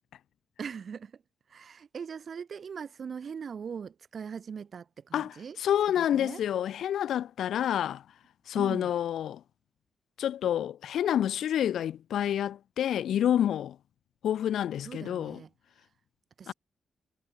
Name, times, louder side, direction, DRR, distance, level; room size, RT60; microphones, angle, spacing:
voice 1, 0.6-1.2 1.5-5.6 6.0-6.4 8.6-8.9 14.8-15.5 16.4-16.5, right 6 dB, 65° right, 6.0 m, -41 dB
voice 2, 5.1-8.0 8.5-9.4 10.2-13.8 14.2-15.4 16.5-16.6, left 10 dB, 80° left, 0.6 m, -28 dB
supercardioid pair, 50°, 0 cm